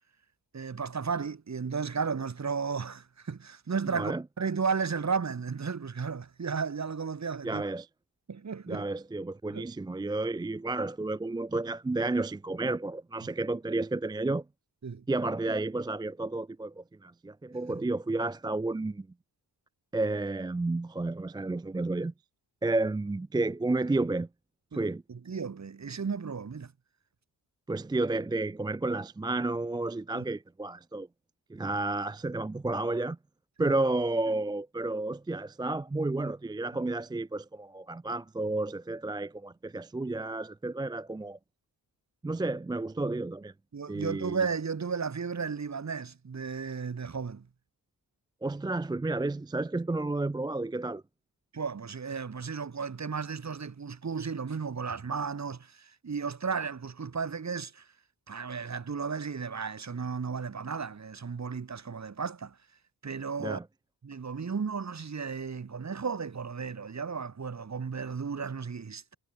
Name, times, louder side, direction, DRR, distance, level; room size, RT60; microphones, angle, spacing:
voice 1, 0.5-7.6 8.3-8.8 9.5-9.6 14.8-15.0 17.7-17.8 24.7-24.8 25.1-26.7 30.1-30.2 33.6-33.7 43.7-47.5 51.5-57.9 58.3-62.6 63.0-63.6 64.0-69.1, right 5 dB, 40° right, 4.4 m, -34 dB
voice 2, 7.4-7.9 8.7-14.4 15.1-19.1 19.9-22.1 22.6-24.3 24.7-25.0 27.7-31.1 31.5-33.2 33.6-41.4 42.2-43.5 43.9-44.4 48.4-51.0 63.4-63.6, right 2 dB, 10° right, 0.4 m, -31 dB
wide cardioid pair, 130°, 41 cm